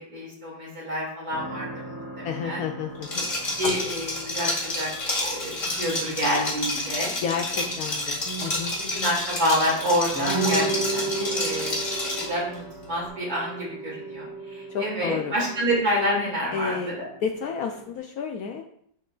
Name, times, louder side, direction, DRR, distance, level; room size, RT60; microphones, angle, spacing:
voice 1, 0.0-2.6 3.6-4.9 5.1-7.1 8.9-11.8 12.2-17.1, equal, 55° right, -4 dB, 2.9 m, -28 dB
sound 1, 1.3-17.9, right 3 dB, 15° right, 1.4 m, -36 dB
voice 2, 2.2-3.6 7.2-8.7 14.7-15.3 16.5-16.9 17.2-18.6, left 6 dB, 70° left, 3 dB, 0.9 m, -31 dB
Liquid, 3.0-12.4, left 2 dB, 45° left, 2.3 m, -29 dB
11.0 x 4.6 x 2.4 m, 0.68 s
omnidirectional pair, 1.9 m